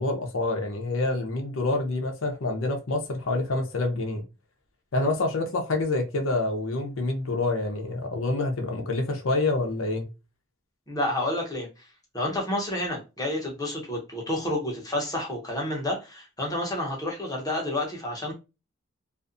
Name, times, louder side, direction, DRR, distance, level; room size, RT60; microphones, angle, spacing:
voice 1, 0.0-4.2 4.9-10.1, left 2 dB, 70° left, 0.6 m, -27 dB
voice 2, 10.9-11.7 12.1-18.3, left 1 dB, 20° left, 0.9 m, -29 dB
2.5 x 2.3 x 2.5 m
head